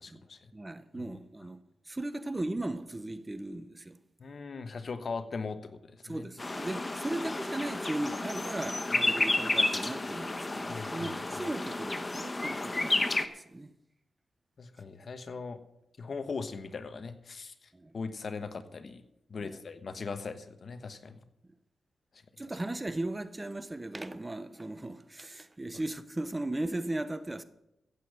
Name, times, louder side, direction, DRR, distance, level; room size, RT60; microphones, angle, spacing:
voice 1, 0.0-0.5 4.2-6.3 10.7-11.1 14.6-15.6 16.0-19.0 19.3-21.2 25.7-25.8, left 4 dB, 50° left, 1.1 m, -40 dB
voice 2, 0.5-1.6 1.9-4.0 6.0-13.7 17.7-17.9 19.4-19.6 22.4-27.4, right 1 dB, 20° right, 0.9 m, -37 dB
sound 1, 6.4-13.3, left 2 dB, 25° left, 1.1 m, -31 dB
15.0 x 8.1 x 6.6 m
cardioid pair, 75°, 0 cm